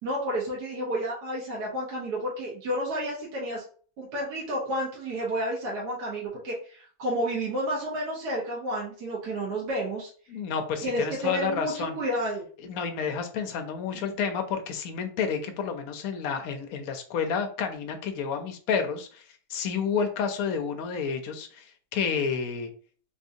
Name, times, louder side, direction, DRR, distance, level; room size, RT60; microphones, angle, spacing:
voice 1, 0.0-3.6 4.0-10.1 10.8-12.4 13.9-14.1, right 1 dB, 75° right, -4 dB, 1.5 m, -31 dB
voice 2, 10.3-12.0 12.6-19.2 19.5-22.7, left 6 dB, 70° left, 6 dB, 0.9 m, -30 dB
3.7 x 2.6 x 2.6 m, 0.43 s
omnidirectional pair, 1.8 m